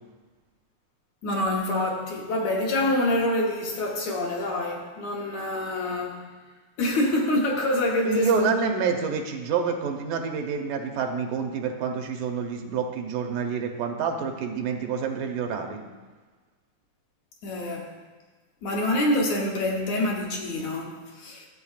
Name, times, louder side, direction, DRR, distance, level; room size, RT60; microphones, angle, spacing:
voice 1, 1.2-6.3 6.8-8.5 15.6-15.8 17.4-17.9 18.6-21.5, left 1 dB, 70° left, -1 dB, 2.0 m, -26 dB
voice 2, 8.0-15.8, right 6 dB, 85° right, 3 dB, 2.3 m, -28 dB
14.0 x 7.7 x 2.4 m, 1.3 s
omnidirectional pair, 3.7 m